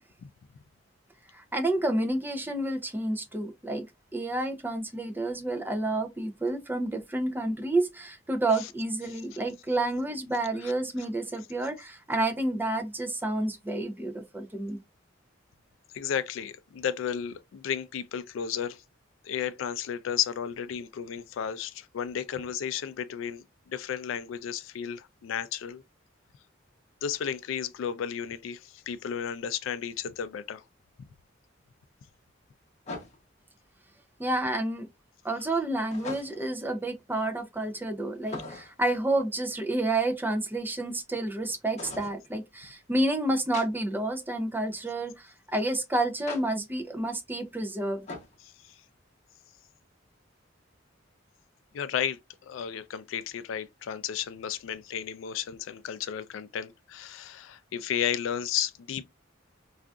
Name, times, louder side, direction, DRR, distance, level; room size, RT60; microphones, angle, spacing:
voice 1, 1.3-3.9 4.1-14.8 34.2-34.9 35.2-48.1, right 2 dB, 10° right, 0.4 m, -29 dB
voice 2, 15.9-18.8 19.2-25.8 27.0-30.6 48.4-48.8 51.7-59.1, left 8 dB, 80° left, 0.3 m, -33 dB
sound 1, 30.2-30.3 32.8-33.4 35.9-36.6 38.2-38.9 41.8-42.2 43.5-43.7 46.3-46.4 48.1-48.4, left 3 dB, 35° left, 0.7 m, -40 dB
3.7 x 2.4 x 2.2 m
head